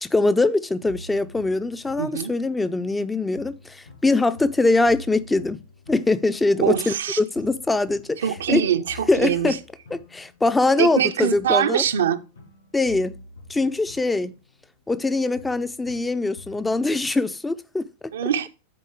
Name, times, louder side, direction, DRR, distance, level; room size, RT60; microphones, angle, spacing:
voice 1, 0.0-5.6 5.9-8.6 9.1-9.6 9.9-11.8 12.7-13.2 13.5-14.4 14.9-17.9, left 2 dB, 10° left, 0.4 m, -22 dB
sound 1, 0.9-3.0 3.4-7.1 7.4-11.0 11.4-15.1 15.4-16.9, left 3 dB, 75° left, 4.5 m, -47 dB
voice 2, 2.0-2.3 6.6-7.2 8.2-9.6 10.8-12.2 18.1-18.5, right 9 dB, 65° right, 0.5 m, -23 dB
9.8 x 4.2 x 4.6 m
figure-of-eight pair, 90°, 0 cm